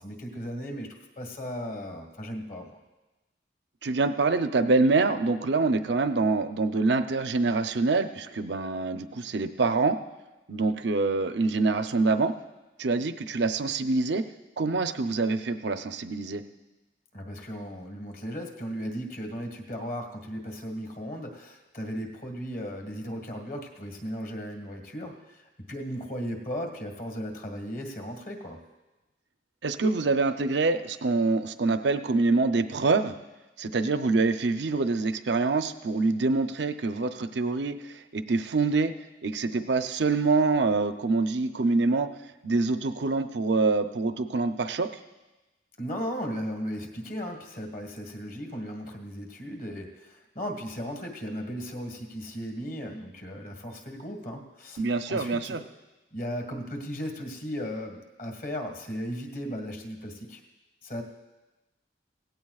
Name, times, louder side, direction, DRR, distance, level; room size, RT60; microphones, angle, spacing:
voice 1, 0.0-2.8 17.1-25.4 25.7-28.6 45.8-55.6 56.1-60.4 60.8-61.0, equal, 45° left, 2 dB, 1.8 m, -36 dB
voice 2, 3.8-10.0 10.5-12.3 12.8-14.2 14.6-16.4 29.6-33.1 33.6-38.9 39.2-42.1 42.4-44.9 54.8-55.6, right 3 dB, 75° right, 9 dB, 0.6 m, -25 dB
17.5 x 16.0 x 2.4 m, 1.1 s
head